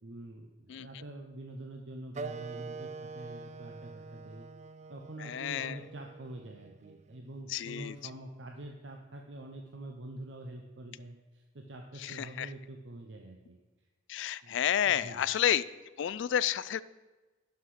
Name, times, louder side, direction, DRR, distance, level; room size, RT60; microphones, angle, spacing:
voice 1, 0.0-4.5 4.9-13.6 14.4-14.6 14.8-15.2, right 1 dB, 65° right, 2 dB, 0.8 m, -45 dB
Wind instrument woodwind instrument, 2.1-7.3, right 4 dB, 35° right, 0.3 m, -45 dB
voice 2, 5.2-5.8 7.5-8.0 12.0-12.5 14.1-15.6 16.0-16.8, left 10 dB, 70° left, 18 dB, 0.3 m, -30 dB
11.5 x 5.9 x 4.9 m, 1.2 s
head